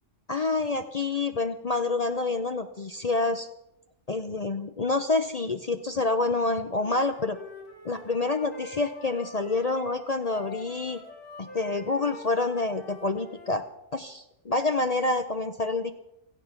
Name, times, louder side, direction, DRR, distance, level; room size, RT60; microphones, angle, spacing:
voice 1, 0.3-3.5 4.1-7.4 7.8-11.0 11.4-13.6 13.9-15.9, left 3 dB, 40° left, 8 dB, 0.7 m, -27 dB
Wind instrument woodwind instrument, 6.8-13.6, left 3 dB, 85° left, 3.7 m, -45 dB
16.5 x 14.5 x 5.9 m, 0.86 s
omnidirectional pair, 1.3 m